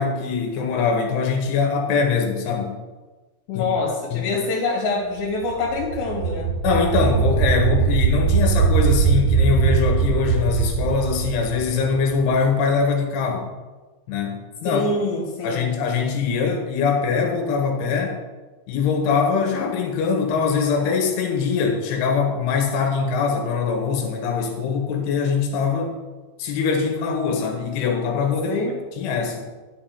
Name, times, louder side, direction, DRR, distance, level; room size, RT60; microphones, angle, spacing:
voice 1, 0.0-2.8 3.5-3.6 4.1-4.2 6.6-13.5 14.1-14.8 15.4-18.2 18.7-26.0 26.4-28.6 29.0-29.4, left 5 dB, 85° left, 2 dB, 3.4 m, -22 dB
voice 2, 3.5-6.6 14.6-15.6 28.5-28.8, left 3 dB, 65° left, -3 dB, 3.8 m, -25 dB
sound 1, 5.5-12.3, right 6 dB, 75° right, 2.0 m, -21 dB
11.5 x 8.0 x 3.7 m, 1.3 s
omnidirectional pair, 4.7 m